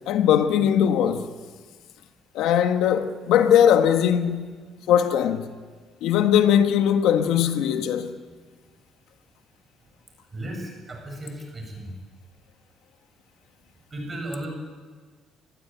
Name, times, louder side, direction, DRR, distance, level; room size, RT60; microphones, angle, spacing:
voice 1, 0.1-1.2 2.3-4.6 4.9-5.5 6.0-8.2, left 9 dB, 70° left, 1.6 m, -20 dB
voice 2, 10.3-11.9 13.9-14.5, right 1 dB, 20° right, 7.8 m, -35 dB
26.0 x 20.5 x 9.3 m
cardioid pair, 180°, 0 cm